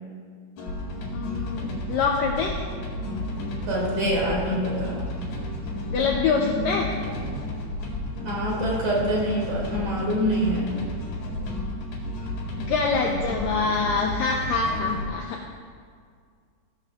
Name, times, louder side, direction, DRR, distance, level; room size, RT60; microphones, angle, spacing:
sound 1, 0.6-15.1, left 1 dB, 70° left, 4.0 m, -32 dB
voice 1, 1.1-2.6 5.9-6.9 12.6-15.4, left 4 dB, 90° left, 0 dB, 1.9 m, -25 dB
voice 2, 3.6-5.1 8.2-10.7, equal, 45° right, -4 dB, 3.4 m, -25 dB
17.0 x 12.5 x 2.4 m, 2.1 s
omnidirectional pair, 5.0 m